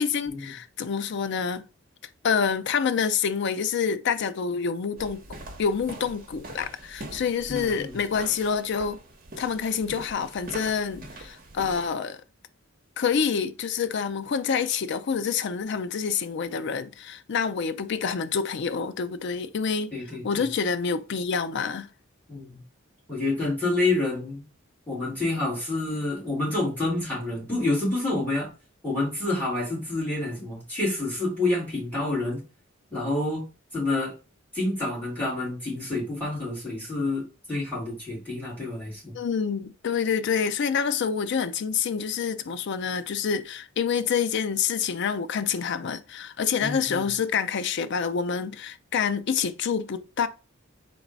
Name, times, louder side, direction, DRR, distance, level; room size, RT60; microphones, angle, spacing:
voice 1, 0.0-1.6 2.2-5.2 5.6-9.0 9.4-12.2 13.0-19.9 20.2-21.9 39.1-50.3, left 6 dB, 55° left, 0.4 m, -27 dB
sound 1, 5.0-11.9, right 1 dB, 45° right, 1.0 m, -43 dB
voice 2, 7.5-7.9 19.9-20.5 22.3-22.6 23.1-24.4 24.9-28.5 28.8-32.4 32.9-33.4 33.7-34.1 34.5-39.1 46.6-47.1, left 2 dB, 10° left, 2.7 m, -28 dB
4.0 x 2.6 x 4.5 m
head